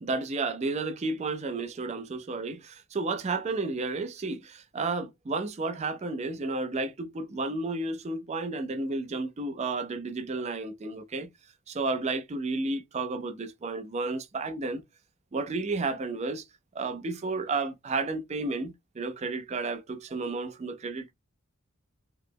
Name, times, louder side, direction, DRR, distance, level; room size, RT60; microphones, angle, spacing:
voice 1, 0.0-11.3 11.7-14.8 15.3-16.5 16.7-21.1, right 3 dB, 30° right, 0.4 m, -32 dB
3.0 x 2.0 x 3.4 m
head